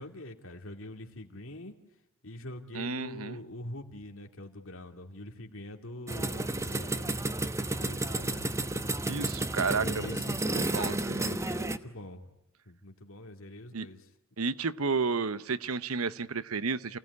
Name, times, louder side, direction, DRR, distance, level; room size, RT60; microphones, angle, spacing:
voice 1, 0.0-1.7 2.2-7.2 7.7-8.5 9.6-12.3 12.7-14.1, left 1 dB, 70° left, 5 dB, 2.7 m, -43 dB
voice 2, 2.7-3.4 9.1-10.0 10.5-11.2 13.7-13.9 14.4-17.0, right 4 dB, 85° right, 15 dB, 0.9 m, -32 dB
sound 1, 6.1-11.8, right 2 dB, 15° right, 1.0 m, -32 dB
29.0 x 17.5 x 9.7 m, 0.87 s
head